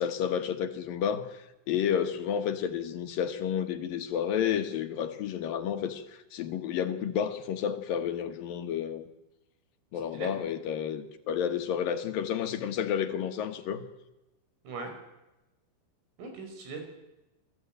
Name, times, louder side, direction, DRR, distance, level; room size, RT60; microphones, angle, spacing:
voice 1, 0.0-9.0 9.9-13.9, left 8 dB, 70° left, 7 dB, 2.2 m, -31 dB
voice 2, 16.2-16.9, right 4 dB, 80° right, 5 dB, 7.8 m, -39 dB
28.0 x 18.0 x 9.1 m, 0.97 s
omnidirectional pair, 5.8 m